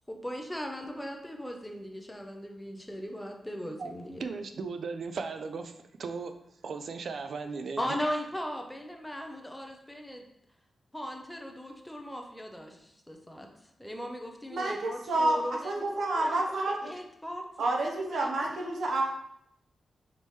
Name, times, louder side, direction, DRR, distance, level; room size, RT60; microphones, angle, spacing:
voice 1, 0.1-4.3 7.8-10.3 10.9-13.5 13.8-17.5 17.8-18.8, equal, 5° left, 2 dB, 0.5 m, -38 dB
voice 2, 4.2-6.3 6.6-7.9, right 4 dB, 60° right, 7 dB, 0.3 m, -37 dB
voice 3, 14.5-15.4 15.6-16.9 17.6-19.0, right 2 dB, 80° right, 0 dB, 0.7 m, -29 dB
4.0 x 3.6 x 3.1 m, 0.76 s
wide cardioid pair, 135°, 0 cm